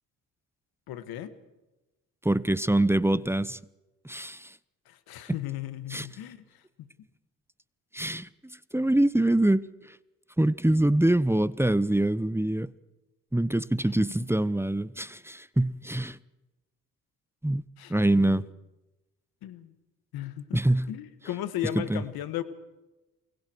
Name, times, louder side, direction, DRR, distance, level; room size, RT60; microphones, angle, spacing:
voice 1, 0.9-1.3 4.9-6.4 17.8-17.9 19.4-19.7 20.1-20.6 20.9-22.4, left 12 dB, 85° left, 1.7 m, -35 dB
voice 2, 2.2-3.6 4.0-4.5 5.9-6.1 7.9-8.3 8.7-9.7 10.4-12.7 13.3-16.2 17.4-17.6 17.9-18.4 20.5-20.9 21.7-22.0, right 1 dB, 5° right, 0.9 m, -24 dB
29.0 x 22.0 x 4.7 m
supercardioid pair, 60°, 36 cm